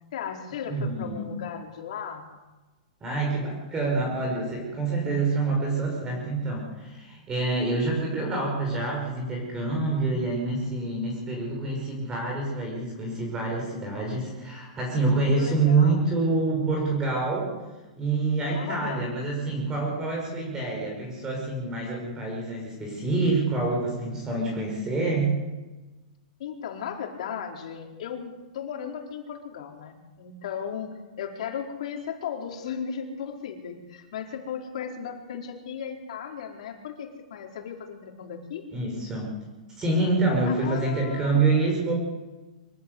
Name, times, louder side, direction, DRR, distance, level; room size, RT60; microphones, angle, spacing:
voice 1, 0.1-2.3 15.4-16.0 18.5-19.2 26.4-38.6 40.5-41.5, left 7 dB, 65° left, 2 dB, 4.5 m, -36 dB
voice 2, 0.7-1.3 3.0-17.5 18.0-25.4 38.7-39.3 39.8-41.9, right 3 dB, 15° right, -1 dB, 5.5 m, -26 dB
24.5 x 15.5 x 8.1 m, 1.2 s
hypercardioid pair, 160°, 4 cm